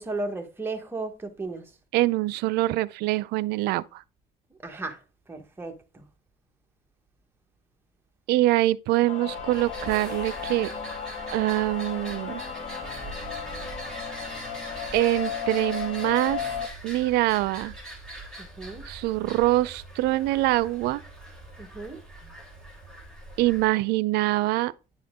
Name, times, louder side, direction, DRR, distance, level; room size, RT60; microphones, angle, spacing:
voice 1, 0.0-1.6 4.6-5.0 5.3-6.0 18.4-18.8 21.6-22.0, right 3 dB, 15° right, 1.3 m, -35 dB
voice 2, 1.9-4.0 8.3-10.7 11.3-12.4 14.9-16.6 16.8-17.7 18.9-21.0 23.4-24.7, right 17 dB, 75° right, 0.5 m, -24 dB
sound 1, 9.1-16.7, left 7 dB, 45° left, 1.5 m, -35 dB
sound 2, 9.3-23.7, right 1 dB, 5° left, 3.3 m, -42 dB
9.9 x 4.3 x 3.7 m
cardioid pair, 130°, 17 cm